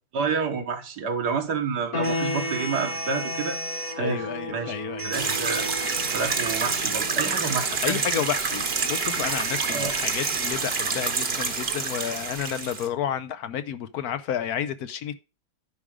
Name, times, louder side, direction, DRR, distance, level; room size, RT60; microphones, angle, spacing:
voice 1, 0.1-3.6 4.0-4.7 5.0-5.7 6.1-8.2 9.7-10.0, right 5 dB, 75° right, 1.9 m, -29 dB
sound 1, 1.9-12.4, left 1 dB, 45° left, 1.6 m, -36 dB
sound 2, 2.0-4.0 5.0-10.5, right 2 dB, 15° right, 0.9 m, -36 dB
voice 2, 2.1-2.5 4.0-5.4 7.8-15.1, left 9 dB, 70° left, 1.1 m, -31 dB
sound 3, 5.1-12.9, right 5 dB, 40° right, 1.2 m, -28 dB
10.0 x 4.8 x 5.0 m
omnidirectional pair, 1.8 m